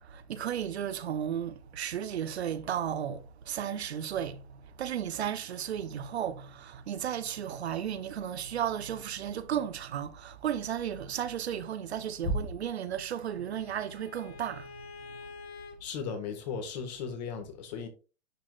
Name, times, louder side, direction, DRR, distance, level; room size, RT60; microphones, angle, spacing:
voice 1, 0.0-14.7, right 9 dB, 85° right, 0.8 m, -34 dB
Bowed string instrument, 12.6-15.8, left 4 dB, 75° left, 1.3 m, -49 dB
voice 2, 15.8-17.9, left 3 dB, 45° left, 1.8 m, -35 dB
10.5 x 4.0 x 2.4 m
hypercardioid pair, 145°, 32 cm